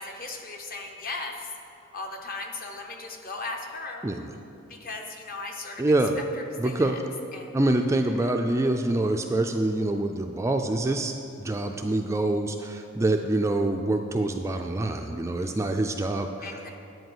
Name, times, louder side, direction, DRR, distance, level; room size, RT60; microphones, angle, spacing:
voice 1, 0.0-1.5 1.9-4.1 4.7-5.8 6.2-7.0 7.3-7.6 8.2-8.3 16.4-16.7, left 3 dB, 45° left, 3 dB, 0.9 m, -37 dB
voice 2, 5.8-6.2 6.6-7.0 7.5-16.7, right 2 dB, 15° right, 4 dB, 0.3 m, -26 dB
10.0 x 4.6 x 7.9 m, 2.7 s
head